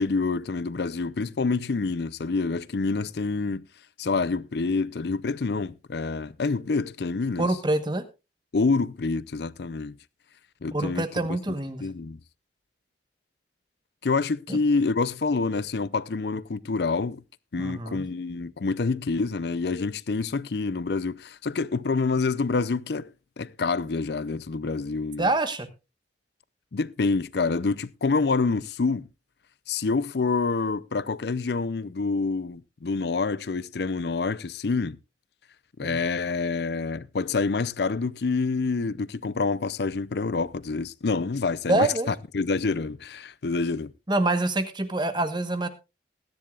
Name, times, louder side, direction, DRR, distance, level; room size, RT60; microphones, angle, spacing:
voice 1, 0.0-3.6 4.0-7.5 8.5-9.9 10.6-11.0 11.8-12.2 14.0-17.2 17.5-23.1 23.4-25.3 26.7-29.1 29.7-35.0 35.8-43.9, left 4 dB, 60° left, 0.5 m, -27 dB
voice 2, 7.4-8.0 10.7-11.9 14.5-14.6 17.6-18.0 25.2-25.7 35.8-36.0 41.7-42.1 44.1-45.7, right 2 dB, 25° right, 1.1 m, -26 dB
20.0 x 10.5 x 2.4 m
head